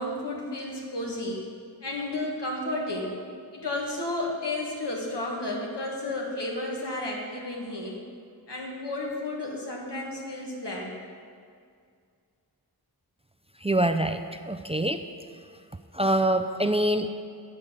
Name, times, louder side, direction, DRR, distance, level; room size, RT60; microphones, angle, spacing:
voice 1, 0.0-1.4 1.8-3.1 3.5-8.0 8.5-10.9, left 2 dB, 90° left, -2 dB, 1.6 m, -32 dB
voice 2, 13.6-14.2 14.5-15.0 15.9-17.1, right 1 dB, 15° right, 7 dB, 0.3 m, -24 dB
8.1 x 5.4 x 7.2 m, 2.2 s
wide cardioid pair, 45°, 41 cm